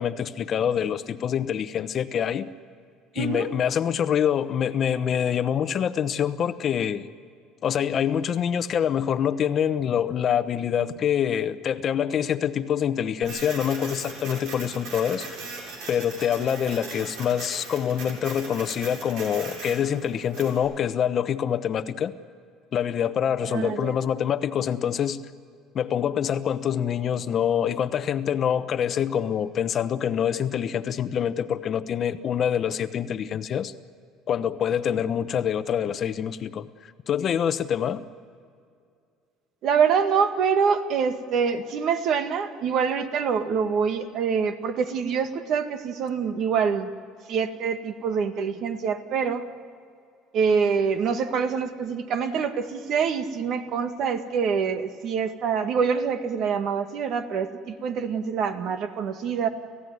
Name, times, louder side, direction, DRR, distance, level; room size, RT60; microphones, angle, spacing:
voice 1, 0.0-2.5 3.1-7.1 7.6-15.3 15.9-22.1 22.7-25.2 25.7-33.7 34.3-38.0, left 8 dB, 40° left, 11 dB, 0.9 m, -25 dB
voice 2, 3.2-3.5 23.5-23.9 39.6-46.9 47.3-49.5 50.3-59.5, right 6 dB, 55° right, 8 dB, 1.9 m, -25 dB
Printer, 13.2-20.6, right 3 dB, 75° right, 7.5 m, -39 dB
30.0 x 15.5 x 9.4 m, 2.3 s
cardioid pair, 130°, 0 cm